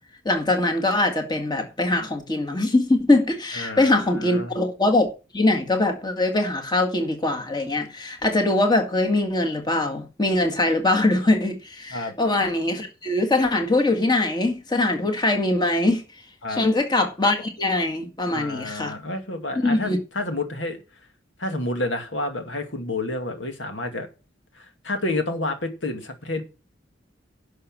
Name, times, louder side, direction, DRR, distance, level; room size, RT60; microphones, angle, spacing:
voice 1, 0.3-5.1 5.3-16.0 16.5-19.0 19.6-20.0, left 2 dB, 25° left, 2.0 m, -22 dB
voice 2, 3.5-3.9 4.2-4.5 11.9-12.1 16.4-16.6 18.3-20.8 21.4-24.1 24.6-26.4, left 2 dB, 80° left, 2.3 m, -29 dB
11.0 x 6.3 x 6.1 m
head